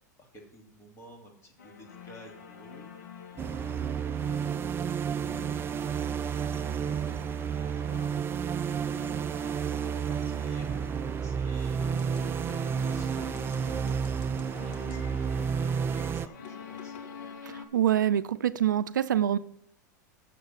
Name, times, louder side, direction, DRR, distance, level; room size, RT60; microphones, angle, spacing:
voice 1, 0.2-2.9 3.3-5.3 5.8-8.9 9.4-12.3 12.7-16.9, left 1 dB, 30° left, 2.7 m, -54 dB
sound 1, 1.6-17.7, left 6 dB, 70° left, 1.4 m, -48 dB
sound 2, 3.4-16.3, right 7 dB, 25° right, 0.3 m, -31 dB
sound 3, 11.8-17.3, left 6 dB, 50° left, 1.5 m, -51 dB
voice 2, 17.4-19.4, right 11 dB, 85° right, 0.4 m, -25 dB
6.6 x 6.6 x 7.2 m
hypercardioid pair, 105°, 10 cm